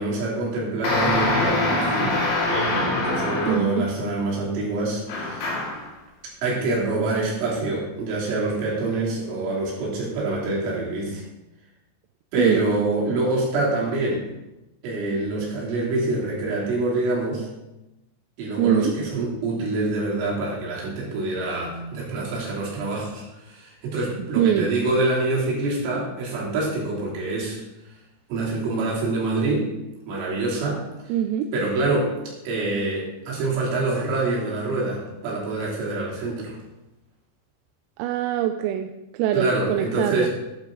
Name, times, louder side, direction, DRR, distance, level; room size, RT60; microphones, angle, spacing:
voice 1, 0.0-2.2 2.5-5.6 6.4-11.2 12.3-14.3 14.8-17.5 18.4-27.6 28.3-29.7 30.1-31.1 31.5-32.2 32.5-36.6 39.3-40.3, right 2 dB, 70° right, -4 dB, 5.6 m, -26 dB
sound 1, 0.8-3.9 5.1-5.9, left 2 dB, 60° left, 4.8 m, -24 dB
voice 2, 3.5-3.9 12.4-12.7 18.6-18.9 24.4-24.7 31.1-31.5 38.0-40.3, right 10 dB, 85° right, 6 dB, 3.3 m, -23 dB
13.0 x 11.0 x 3.9 m, 0.98 s
omnidirectional pair, 6.0 m